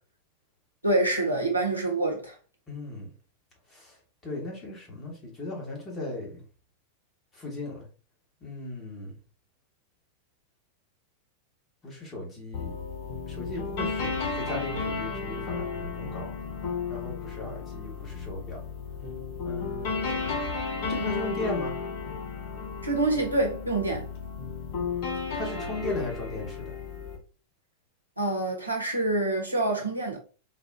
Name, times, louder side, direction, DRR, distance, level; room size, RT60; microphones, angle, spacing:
voice 1, 0.8-2.3 22.8-24.1 28.2-30.2, right 2 dB, 85° right, 0.9 m, -26 dB
voice 2, 2.7-3.1 3.7-3.9 4.2-6.4 7.3-7.8 8.4-9.1 11.8-12.8 13.3-16.3 16.9-18.6 19.4-20.4 20.9-21.7 25.3-26.7, left 2 dB, 20° left, 1.5 m, -37 dB
sound 1, 12.5-27.2, left 5 dB, 45° left, 0.8 m, -33 dB
4.0 x 2.4 x 2.6 m
figure-of-eight pair, 90°, 0 cm